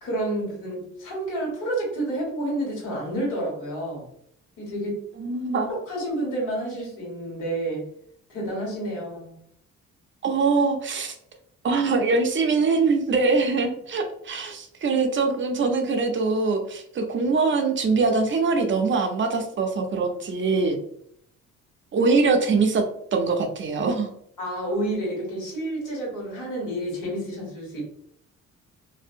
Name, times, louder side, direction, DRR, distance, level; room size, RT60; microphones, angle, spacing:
voice 1, 0.0-4.0 4.6-5.0 5.9-7.9 8.3-9.3 24.4-27.8, right 1 dB, 80° left, -3 dB, 1.4 m, -29 dB
voice 2, 5.2-5.8 10.2-11.1 11.6-20.8 21.9-22.8 23.1-24.1, right 4 dB, 40° right, 4 dB, 0.5 m, -23 dB
2.6 x 2.1 x 2.5 m, 0.69 s
cardioid pair, 90°, 30 cm